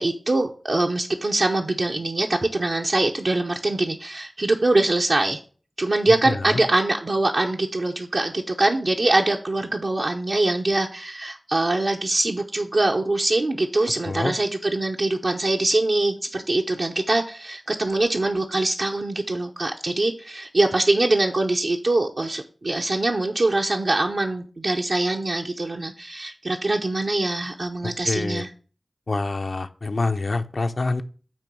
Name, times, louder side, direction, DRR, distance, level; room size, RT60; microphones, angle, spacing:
voice 1, 0.0-5.4 5.8-28.5, right 2 dB, 70° right, 0 dB, 0.7 m, -23 dB
voice 2, 6.3-6.6 14.0-14.3 27.8-28.5 29.1-31.0, left 3 dB, 70° left, 8 dB, 0.6 m, -26 dB
8.9 x 3.0 x 6.0 m, 0.39 s
wide cardioid pair, 45°, 0 cm